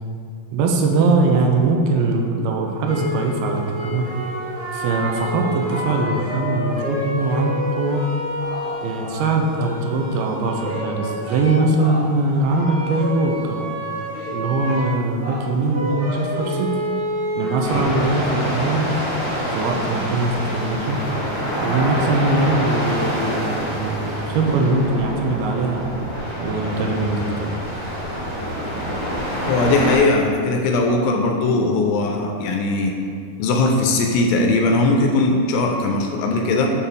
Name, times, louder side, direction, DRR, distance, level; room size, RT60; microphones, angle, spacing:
voice 1, 0.5-4.0 4.7-8.0 8.8-13.6 14.3-16.7 17.4-18.9 19.5-21.0 21.6-25.9 26.4-27.5, right 3 dB, 90° right, 2 dB, 2.5 m, -21 dB
sound 1, 2.9-12.0 12.4-17.9, equal, 65° right, 2.4 m, -29 dB
sound 2, 17.6-30.0, equal, 65° left, 0.9 m, -26 dB
voice 2, 29.5-32.9 33.4-36.7, left 2 dB, 80° left, 2 dB, 2.2 m, -19 dB
7.2 x 4.1 x 3.8 m, 2.3 s
omnidirectional pair, 4.3 m